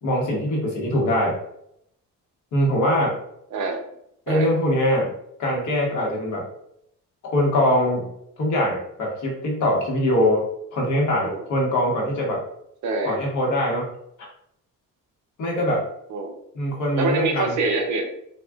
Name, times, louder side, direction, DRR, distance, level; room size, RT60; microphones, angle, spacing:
voice 1, 0.0-1.4 2.5-3.1 4.3-5.1 5.4-6.4 7.2-8.1 8.4-10.4 10.7-12.4 13.0-13.9 15.4-15.8 16.5-17.5, left 1 dB, 60° left, -1 dB, 1.0 m, -22 dB
voice 2, 3.5-3.8 4.3-4.5 11.2-11.4 12.8-13.2 16.1-16.4 17.0-18.1, right 3 dB, 60° right, 3 dB, 0.7 m, -25 dB
3.4 x 2.3 x 2.3 m, 0.74 s
cardioid pair, 165°, 33 cm